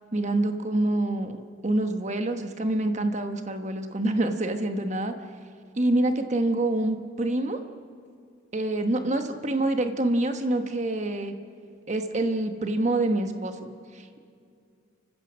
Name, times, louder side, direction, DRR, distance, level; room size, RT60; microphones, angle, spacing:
voice 1, 0.1-1.4 1.6-5.1 5.7-7.6 8.5-11.3 11.9-14.2, right 2 dB, 40° right, 7 dB, 1.2 m, -26 dB
29.0 x 15.5 x 6.3 m, 2.4 s
head